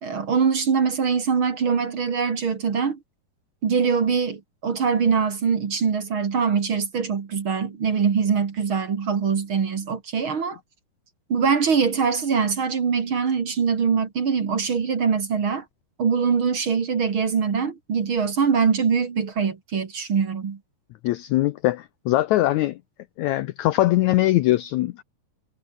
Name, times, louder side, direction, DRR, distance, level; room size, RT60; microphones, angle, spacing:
voice 1, 0.0-3.0 3.6-10.6 11.3-15.6 16.0-20.6, right 6 dB, 40° right, 2.4 m, -23 dB
voice 2, 21.0-22.8 23.2-25.0, left 16 dB, 85° left, 1.7 m, -21 dB
omnidirectional pair, 4.1 m